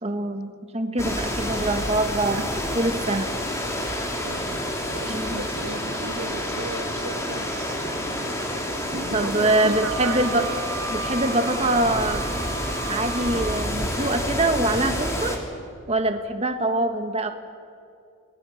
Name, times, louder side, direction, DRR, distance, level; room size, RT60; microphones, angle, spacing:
voice 1, 0.0-2.4 2.7-3.3 5.1-5.4 9.1-10.4 10.9-12.2 12.9-15.4 15.9-17.3, right 2 dB, 30° right, 6 dB, 1.4 m, -24 dB
sound 1, 1.0-15.4, left 1 dB, 15° left, 3.1 m, -29 dB
voice 2, 4.2-8.3 8.9-10.3, right 3 dB, 85° right, 7 dB, 1.9 m, -35 dB
Wind instrument woodwind instrument, 9.4-13.7, right 7 dB, 65° right, 2.1 m, -36 dB
29.0 x 20.0 x 7.2 m, 2.4 s
head